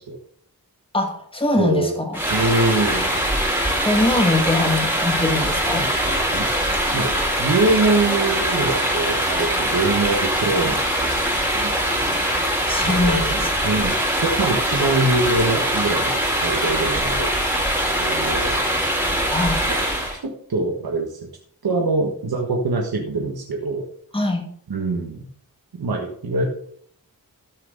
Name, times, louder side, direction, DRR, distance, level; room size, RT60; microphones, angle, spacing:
voice 1, 0.9-2.2 3.8-5.9 12.7-13.5 19.3-19.6 24.1-24.5, left 2 dB, 15° left, 2 dB, 1.9 m, -22 dB
voice 2, 1.6-2.0 2.3-3.2 4.6-4.7 5.7-11.7 12.9-17.3 18.0-18.6 19.7-19.8 20.2-21.2 21.6-23.9 24.7-25.3 25.8-26.5, right 2 dB, 90° right, 0 dB, 1.3 m, -24 dB
sound 1, 2.1-20.2, equal, 5° right, 3.6 m, -22 dB
13.5 x 6.0 x 3.9 m, 0.62 s
wide cardioid pair, 70°, 36 cm